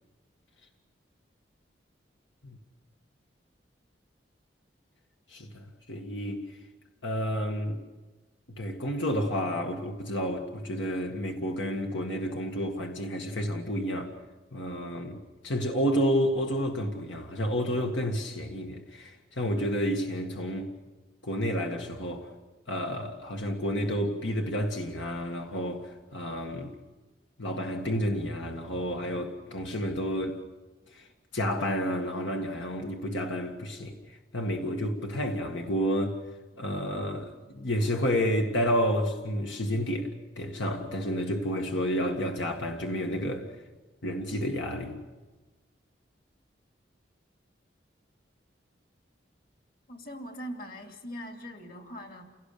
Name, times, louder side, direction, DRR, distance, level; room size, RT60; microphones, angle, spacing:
voice 1, 5.3-6.6 7.0-7.8 8.6-14.1 14.5-20.7 21.2-22.3 22.7-26.7 27.4-30.4 30.9-31.1 31.3-36.2 36.6-43.5 44.0-45.0, equal, 85° left, 1.9 m, -30 dB
voice 2, 49.9-52.2, equal, 50° left, 2.7 m, -41 dB
28.5 x 18.0 x 6.8 m
head